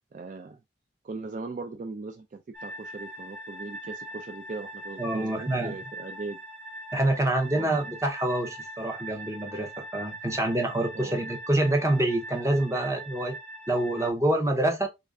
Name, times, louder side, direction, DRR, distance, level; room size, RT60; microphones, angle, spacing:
voice 1, 0.1-0.6 1.0-6.4 7.5-7.8 10.9-11.2, right 3 dB, 45° right, 0.3 m, -39 dB
sound 1, 2.5-14.1, right 2 dB, 70° right, 1.6 m, -42 dB
voice 2, 5.0-5.8 6.9-13.4 13.7-14.9, right 1 dB, 15° right, 0.7 m, -26 dB
3.2 x 2.5 x 3.4 m
head